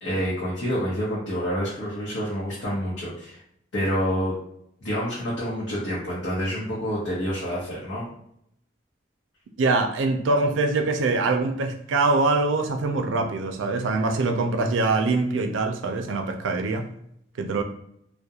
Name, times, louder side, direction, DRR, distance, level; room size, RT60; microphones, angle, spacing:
voice 1, 0.0-3.4 3.7-4.4 4.8-8.1, equal, 75° left, -7 dB, 0.8 m, -28 dB
voice 2, 9.6-16.9 17.4-17.6, right 3 dB, 80° right, 5 dB, 0.4 m, -23 dB
2.3 x 2.1 x 2.7 m, 0.74 s
head